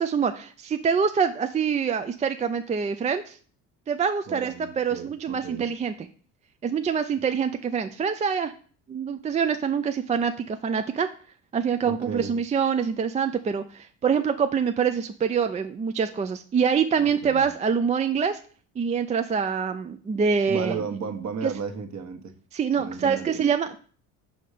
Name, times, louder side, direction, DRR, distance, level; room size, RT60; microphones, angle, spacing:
voice 1, 0.0-3.4 3.9-6.1 6.6-8.5 8.9-11.1 11.5-18.4 18.8-20.8 21.4-21.5 22.5-23.8, right 6 dB, 20° right, 8 dB, 0.3 m, -25 dB
voice 2, 4.3-5.7 11.8-12.3 17.0-17.5 20.5-22.3 22.8-23.4, right 5 dB, 40° right, 7 dB, 1.2 m, -34 dB
5.5 x 4.3 x 4.9 m, 0.43 s
hypercardioid pair, 70°, 40 cm